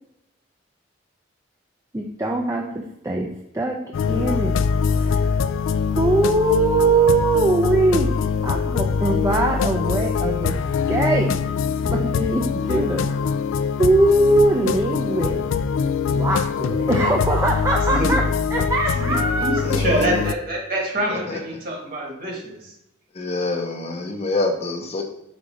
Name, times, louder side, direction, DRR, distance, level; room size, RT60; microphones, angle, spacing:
voice 1, 1.9-3.3 3.5-3.8 4.1-4.5 5.0-5.3 5.9-8.1 8.4-10.5 10.9-11.3 11.8-13.3 13.8-15.4 16.1-18.2 18.5-19.6, right 2 dB, 15° right, 1 dB, 0.4 m, -21 dB
sound 1, 3.9-20.3, left 6 dB, 80° left, 0.3 m, -23 dB
voice 2, 18.9-22.7, right 1 dB, 45° right, -1 dB, 1.8 m, -25 dB
voice 3, 19.6-20.2 21.1-21.4 23.1-25.0, left 2 dB, 30° left, 3 dB, 0.6 m, -26 dB
5.2 x 3.9 x 4.9 m, 0.82 s
head